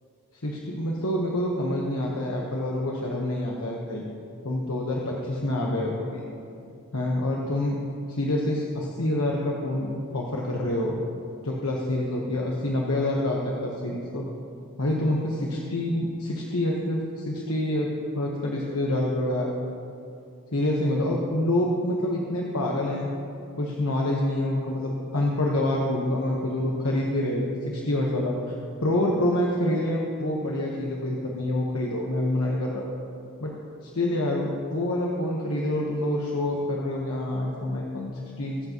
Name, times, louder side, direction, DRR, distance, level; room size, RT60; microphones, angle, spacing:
voice 1, 0.4-4.0 4.4-6.3 6.9-7.8 8.1-11.0 11.4-14.2 14.8-19.5 20.5-23.1 23.6-28.3 28.8-32.9 33.4-33.5 33.8-38.6, left 1 dB, 70° left, -2 dB, 1.2 m, -27 dB
23.5 x 8.1 x 3.1 m, 2.5 s
head